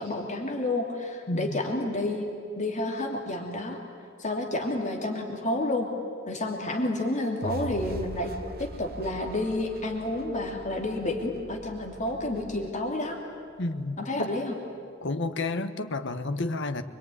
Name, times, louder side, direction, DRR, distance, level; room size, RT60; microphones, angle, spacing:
voice 1, 0.0-2.3 2.6-3.8 4.2-5.9 6.3-8.3 8.6-13.2 14.0-14.5, left 2 dB, 35° left, 2 dB, 2.7 m, -30 dB
voice 2, 1.3-1.6 13.6-14.3 15.0-16.8, left 2 dB, 60° left, 10 dB, 1.2 m, -31 dB
sound 1, 7.4-13.6, right 2 dB, 50° right, 1.0 m, -42 dB
25.0 x 22.0 x 9.7 m, 2.3 s
head